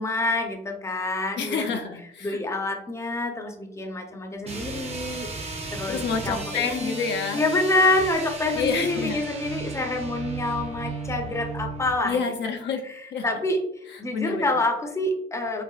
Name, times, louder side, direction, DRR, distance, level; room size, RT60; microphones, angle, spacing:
voice 1, 0.0-1.8 2.2-7.0 7.3-12.2 12.8-13.6 14.0-15.6, left 2 dB, 15° left, 4 dB, 0.6 m, -27 dB
voice 2, 1.4-2.4 5.9-7.4 8.5-9.2 12.0-12.8 13.1-13.2 13.9-14.5, left 5 dB, 65° left, 5 dB, 0.5 m, -28 dB
sound 1, 4.4-12.0, right 3 dB, 30° right, 0.8 m, -35 dB
5.6 x 2.0 x 2.3 m, 0.75 s
cardioid pair, 90°, 20 cm